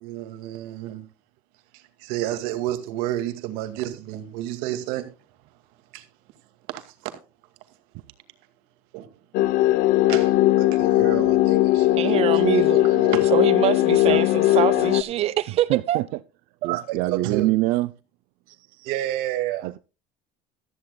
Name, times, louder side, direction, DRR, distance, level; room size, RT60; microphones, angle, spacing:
voice 1, 0.0-1.1 1.7-5.1 5.9-6.1 6.7-7.2 8.9-9.1 10.1-10.3 10.6-11.9 12.3-12.4 12.7-13.2 16.6-17.5 18.9-19.7, right 13 dB, 85° right, 2.2 m, -30 dB
sound 1, 9.3-15.0, left 16 dB, 60° left, 0.7 m, -19 dB
voice 2, 11.9-12.9 13.3-16.0, right 12 dB, 40° right, 0.9 m, -24 dB
voice 3, 15.7-16.0 16.6-17.9 18.5-18.9 19.6-19.8, right 18 dB, 65° right, 0.6 m, -25 dB
15.0 x 14.0 x 2.3 m
cardioid pair, 160°, 16 cm